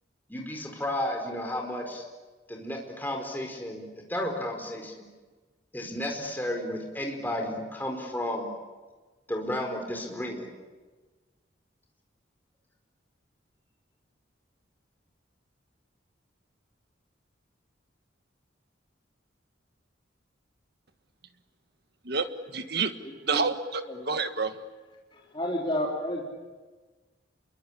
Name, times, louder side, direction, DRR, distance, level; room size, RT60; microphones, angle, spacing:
voice 1, 0.3-2.0 2.5-5.1 5.7-8.5 9.3-10.5, left 1 dB, 10° left, 4.7 m, -33 dB
voice 2, 22.0-22.9 23.3-24.6, right 4 dB, 55° right, 1.6 m, -29 dB
voice 3, 25.1-26.2, left 1 dB, 25° left, 3.7 m, -30 dB
28.0 x 23.0 x 8.7 m
head